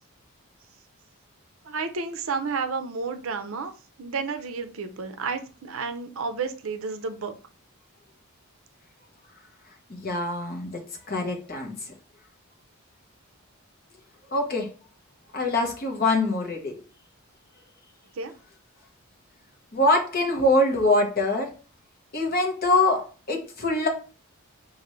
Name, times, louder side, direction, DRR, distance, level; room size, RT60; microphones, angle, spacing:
voice 1, 1.6-7.3 18.2-18.3, right 4 dB, 65° right, 8 dB, 0.5 m, -31 dB
voice 2, 9.9-10.8 11.1-11.7 14.3-14.7 15.3-16.8 19.7-21.5 22.1-23.9, left 2 dB, 45° left, 1 dB, 1.0 m, -24 dB
5.4 x 2.6 x 3.1 m, 0.35 s
head